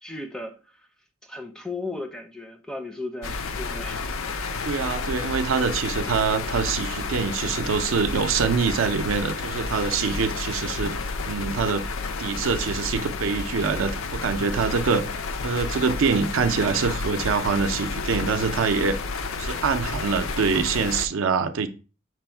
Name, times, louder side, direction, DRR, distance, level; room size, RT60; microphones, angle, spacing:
voice 1, 0.0-0.9 1.2-4.6, left 2 dB, 5° left, 0.4 m, -36 dB
sound 1, 3.2-21.1, left 4 dB, 75° left, 0.4 m, -31 dB
voice 2, 4.6-11.8 12.2-15.1 15.4-19.0 19.4-21.7, right 5 dB, 75° right, 0.5 m, -25 dB
6.0 x 2.0 x 4.3 m
head